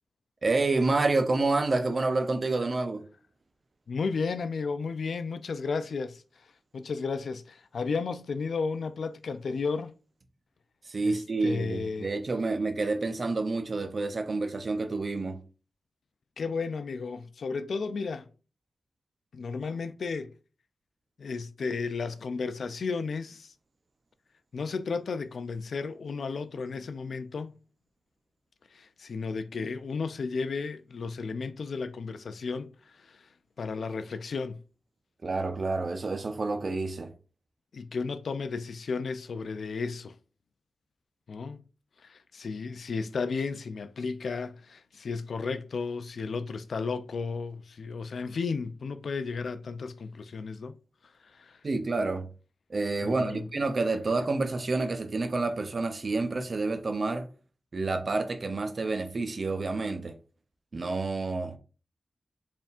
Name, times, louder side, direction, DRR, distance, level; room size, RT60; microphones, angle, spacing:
voice 1, 0.4-3.0 10.9-15.4 35.2-37.1 51.6-52.3 52.7-57.3 57.7-60.1 60.7-61.6, right 3 dB, 55° right, 0.6 m, -28 dB
voice 2, 3.9-6.2 6.7-9.9 11.0-12.1 16.4-18.3 19.3-20.3 21.2-23.5 24.5-27.5 28.7-32.7 33.0-33.3 33.6-34.6 37.7-40.2 41.3-41.6 42.0-50.7 51.3-51.6 53.0-53.5, left 4 dB, 75° left, 0.3 m, -33 dB
4.2 x 3.6 x 2.4 m
cardioid pair, 60°, 0 cm